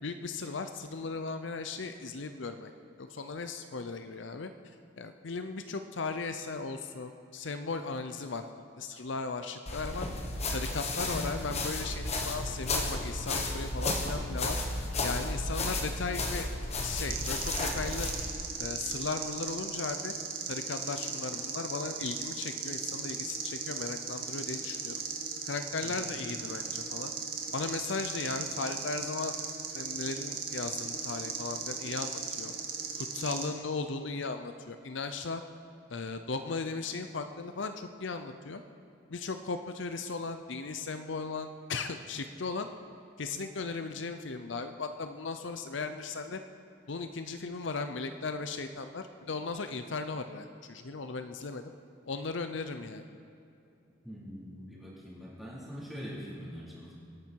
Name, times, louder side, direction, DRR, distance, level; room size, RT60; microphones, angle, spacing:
voice 1, 0.0-2.7 3.0-4.5 5.0-8.5 8.8-10.1 10.5-14.6 15.0-16.5 16.8-18.1 18.6-20.1 20.5-25.0 25.4-27.1 27.5-29.4 29.7-32.5 33.0-35.4 35.9-38.6 39.1-42.7 43.2-46.4 46.9-51.7 52.1-53.1, left 4 dB, 65° left, 8 dB, 0.6 m, -37 dB
sound 1, 9.7-18.3, left 2 dB, 35° left, 1.5 m, -33 dB
sound 2, 17.1-33.5, right 6 dB, 50° right, 2.1 m, -37 dB
voice 2, 54.0-56.9, equal, ahead, -8 dB, 4.1 m, -43 dB
24.5 x 11.5 x 4.7 m, 2.6 s
head